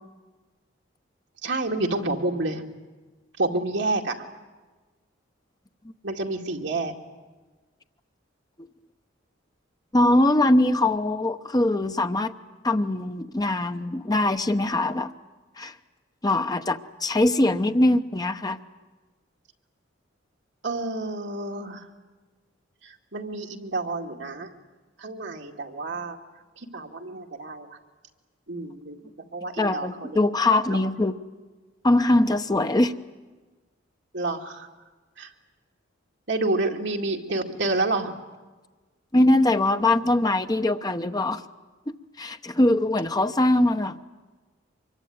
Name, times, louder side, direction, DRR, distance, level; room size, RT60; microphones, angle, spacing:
voice 1, 1.4-2.6 3.4-4.2 6.0-6.9 20.6-21.9 22.8-24.5 25.0-26.2 26.6-27.8 28.5-29.0 29.3-30.2 30.6-30.8 34.1-34.7 35.2-35.3 36.3-38.2, right 2 dB, 65° right, 2 dB, 2.2 m, -29 dB
voice 2, 9.9-12.3 12.6-15.1 15.6-15.7 16.2-18.6 29.6-31.1 31.8-32.9 39.1-41.4 41.9-44.0, left 1 dB, 20° left, 8 dB, 0.9 m, -22 dB
24.5 x 22.5 x 9.5 m, 1.3 s
head